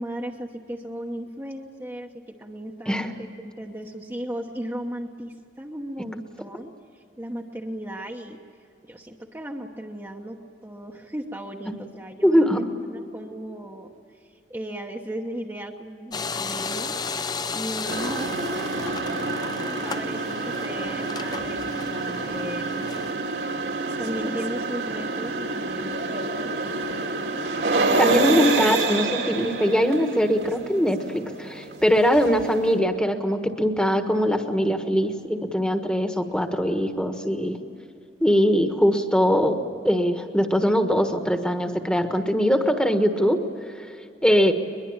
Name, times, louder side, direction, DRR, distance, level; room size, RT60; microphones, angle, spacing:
voice 1, 0.0-3.1 3.4-17.0 17.5-22.9 24.0-27.0, right 1 dB, 15° right, 0 dB, 1.1 m, -36 dB
voice 2, 12.2-12.6 28.0-37.6 38.2-39.6 39.8-43.4 43.8-43.9 44.2-44.5, equal, 5° left, 6 dB, 1.4 m, -21 dB
sound 1, 16.1-23.1, left 4 dB, 20° left, 0.6 m, -34 dB
sound 2, 17.8-32.8, right 3 dB, 75° right, 2.8 m, -28 dB
22.5 x 22.0 x 8.9 m, 2.6 s
head